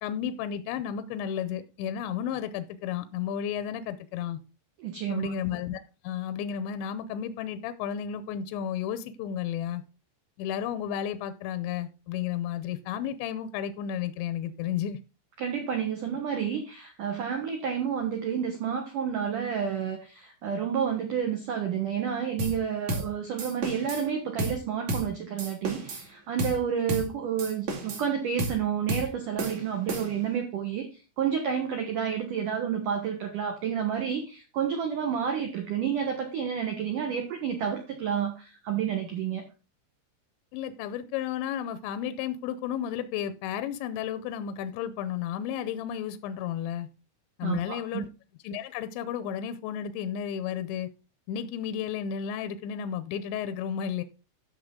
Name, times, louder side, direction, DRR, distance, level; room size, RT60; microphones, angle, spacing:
voice 1, 0.0-4.4 5.1-9.8 10.4-15.0 29.9-30.0 40.5-46.9 47.4-48.1 48.4-50.9 51.3-54.0, left 9 dB, 80° left, 12 dB, 2.7 m, -33 dB
voice 2, 4.8-5.3 15.4-39.4 47.4-48.0, right 8 dB, 80° right, 3 dB, 1.8 m, -30 dB
sound 1, 22.4-22.6 22.9-23.1 23.4-24.0 24.4-24.6 24.9-25.1 25.4-26.1 26.4-26.6 26.9-27.1 27.4-28.1 28.4-28.6 28.9-29.1 29.4-30.3, right 2 dB, 45° right, 2.8 m, -32 dB
12.5 x 6.4 x 3.7 m, 0.32 s
omnidirectional pair, 5.9 m